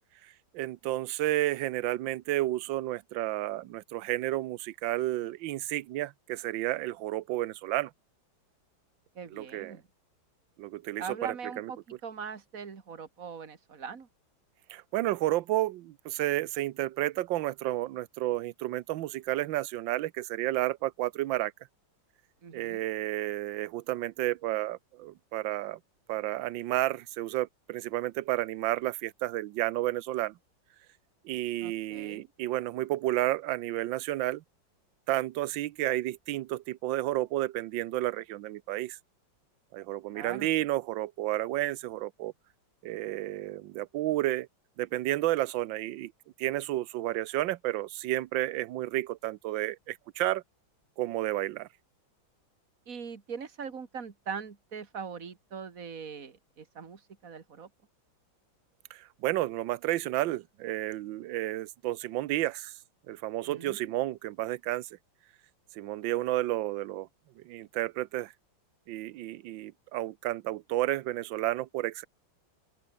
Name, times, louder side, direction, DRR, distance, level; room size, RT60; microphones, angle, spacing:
voice 1, 0.5-7.9 9.3-9.8 10.6-11.7 14.7-21.5 22.5-25.8 26.1-30.3 31.2-34.4 35.1-39.0 39.7-42.3 42.8-44.5 44.8-46.1 46.4-50.4 51.0-51.7 58.9-62.7 63.1-64.9 65.8-67.1 67.4-68.3 68.9-72.1, right 15 dB, 80° right, 1.4 m, -31 dB
voice 2, 9.2-9.8 11.0-14.1 22.4-22.9 31.6-32.3 40.1-40.5 52.9-57.7 63.4-63.9, right 6 dB, 45° right, 2.5 m, -41 dB
open air
omnidirectional pair, 2.1 m